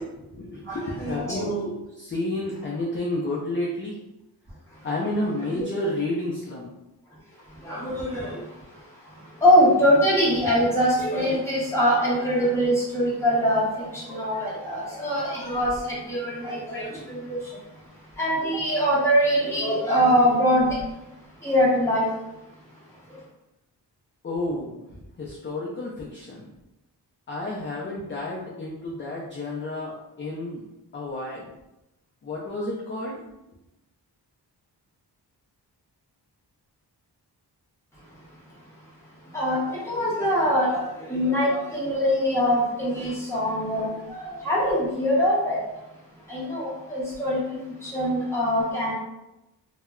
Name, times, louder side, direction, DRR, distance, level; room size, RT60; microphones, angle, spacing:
voice 1, 0.2-4.0 4.8-6.7 8.2-8.5 24.2-26.5 27.3-30.6 30.9-31.5 32.2-33.2, left 1 dB, 30° left, -4 dB, 0.3 m, -31 dB
voice 2, 0.7-1.4 7.6-8.3 9.4-13.6 14.1-15.7 16.1-17.2 18.2-20.7 21.4-22.1 39.3-39.6 39.9-40.8 41.1-43.9 44.2-45.6 46.3-47.4 47.9-48.9, equal, 5° left, -8 dB, 0.9 m, -22 dB
2.1 x 2.0 x 3.5 m, 0.93 s
wide cardioid pair, 170°, 41 cm